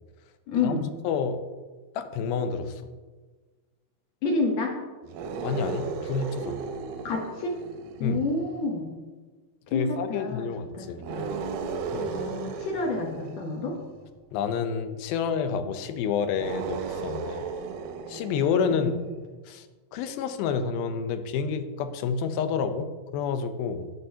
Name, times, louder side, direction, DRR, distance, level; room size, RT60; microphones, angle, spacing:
voice 1, 0.5-0.8 4.2-4.8 7.0-7.6 8.0-8.8 9.7-10.5 10.7-11.3 12.1-13.8 18.7-19.0, left 3 dB, 65° left, 0 dB, 1.8 m, -29 dB
voice 2, 1.0-1.4 2.0-2.8 5.4-6.6 8.0-8.2 9.7-11.1 11.9-12.2 14.3-17.5 18.1-19.0 19.5-19.7 19.9-23.9, left 6 dB, 90° left, 9 dB, 2.5 m, -29 dB
sound 1, 5.0-8.6 11.0-14.1 16.3-19.0, right 5 dB, 85° right, 2.6 m, -35 dB
12.0 x 7.7 x 2.8 m, 1.3 s
omnidirectional pair, 4.1 m